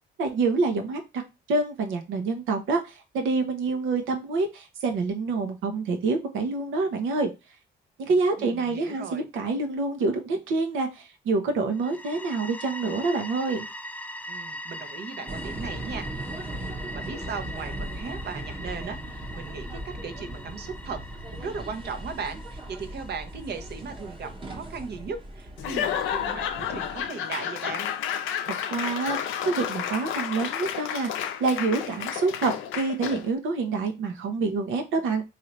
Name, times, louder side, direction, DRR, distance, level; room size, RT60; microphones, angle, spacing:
voice 1, 0.2-1.2 1.5-7.3 8.0-13.7 28.7-35.2, right 3 dB, 85° right, 5 dB, 0.9 m, -27 dB
voice 2, 8.4-9.3 14.3-27.9, right 5 dB, 55° right, 7 dB, 0.8 m, -37 dB
sound 1, 11.7-24.4, left 1 dB, 5° left, 0.4 m, -41 dB
sound 2, 15.3-27.0, right 1 dB, 25° right, 1.0 m, -38 dB
Laughter / Applause / Crowd, 25.6-33.3, left 9 dB, 85° left, 0.5 m, -31 dB
3.3 x 2.7 x 4.0 m, 0.25 s
cardioid pair, 90°, 20 cm